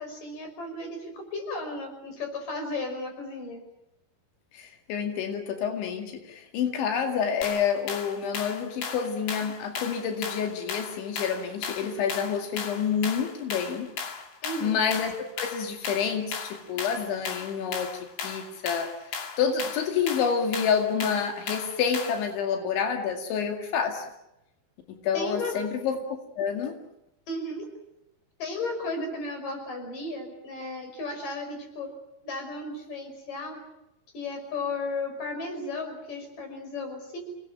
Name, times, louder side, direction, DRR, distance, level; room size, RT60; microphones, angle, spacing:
voice 1, 0.0-3.6 14.4-14.8 25.1-25.5 27.3-27.7 28.4-31.9 32.2-33.6 34.1-37.2, left 2 dB, 45° left, 5 dB, 7.0 m, -34 dB
voice 2, 4.5-13.9 14.6-17.9 18.2-18.9 19.4-24.0 25.0-26.0 26.4-26.7, left 7 dB, 90° left, 5 dB, 4.6 m, -28 dB
sound 1, 7.4-22.3, left 5 dB, 60° left, 4.1 m, -36 dB
28.0 x 20.0 x 8.9 m, 0.85 s
omnidirectional pair, 5.2 m